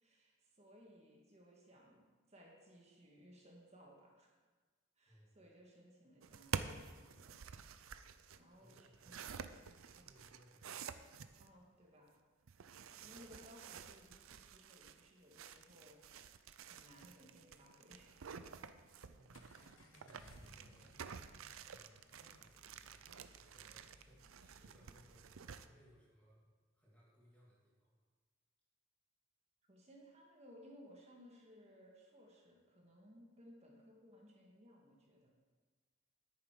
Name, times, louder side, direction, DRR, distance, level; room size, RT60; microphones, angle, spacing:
voice 1, 0.0-2.0 2.3-4.3 5.0-7.4 8.3-9.3 9.7-10.1 11.4-12.1 13.0-16.0 16.6-18.1 29.7-35.3, equal, 30° right, -2 dB, 1.7 m, -61 dB
voice 2, 5.1-5.4 8.4-9.3 9.9-11.1 12.9-13.2 19.1-20.9 21.6-26.5 26.7-28.0, equal, 5° left, -6 dB, 2.5 m, -67 dB
sound 1, 6.2-11.5 12.5-25.7, right 6 dB, 85° right, 0.5 m, -50 dB
Accelerating revving vroom, 18.8-25.3, left 1 dB, 75° left, 1.2 m, -65 dB
10.5 x 9.0 x 4.8 m, 1.4 s
head